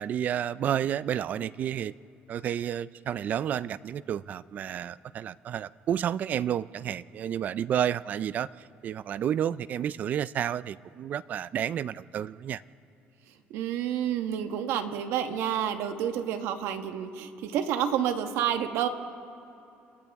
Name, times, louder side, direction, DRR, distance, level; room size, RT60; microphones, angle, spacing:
voice 1, 0.0-1.9 2.3-12.6, right 10 dB, 40° right, 18 dB, 0.4 m, -31 dB
voice 2, 13.5-18.9, right 9 dB, 85° right, 7 dB, 1.4 m, -29 dB
30.0 x 26.0 x 3.6 m, 2.9 s
cardioid pair, 165°, 4 cm